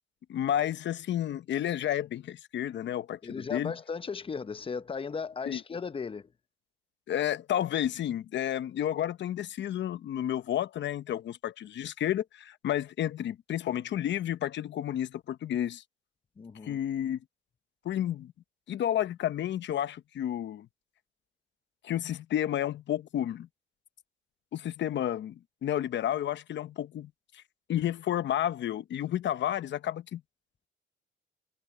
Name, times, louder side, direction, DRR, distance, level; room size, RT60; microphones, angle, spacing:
voice 1, 0.3-3.7 5.5-5.6 7.1-15.8 16.6-17.2 17.8-18.3 18.7-20.7 21.8-23.5 24.5-27.4 27.7-30.2, left 11 dB, 65° left, 0.9 m, -31 dB
voice 2, 3.2-6.3 16.4-16.8, left 5 dB, 25° left, 0.8 m, -36 dB
cardioid pair, 90°, 20 cm